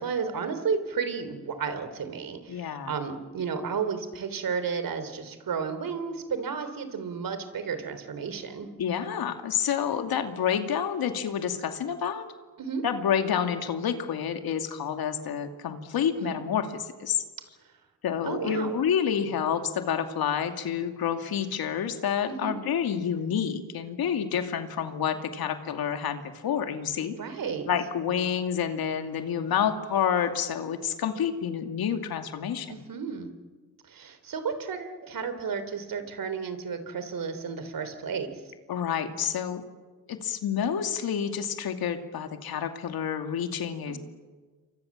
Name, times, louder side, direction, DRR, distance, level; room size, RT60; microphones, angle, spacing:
voice 1, 0.0-8.7 12.6-12.8 16.2-16.4 18.2-18.7 22.3-22.6 27.2-27.7 32.7-33.3 33.8-38.4 43.9-44.0, right 6 dB, 65° right, 10 dB, 3.5 m, -33 dB
voice 2, 2.5-2.9 8.8-12.3 12.8-17.2 18.0-27.1 27.7-32.8 38.7-39.6 40.1-44.0, left 8 dB, 75° left, 6 dB, 2.5 m, -29 dB
28.5 x 24.0 x 7.4 m, 1.4 s
supercardioid pair, 60°, 37 cm